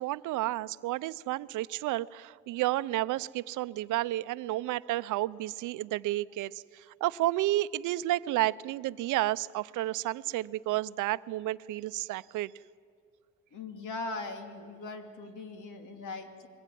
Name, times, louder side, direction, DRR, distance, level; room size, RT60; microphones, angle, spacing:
voice 1, 0.0-12.5, right 16 dB, 85° right, 17 dB, 0.6 m, -31 dB
voice 2, 13.5-16.5, left 3 dB, 80° left, 5 dB, 2.7 m, -40 dB
23.0 x 21.5 x 9.2 m, 2.1 s
cardioid pair, 90°, 30 cm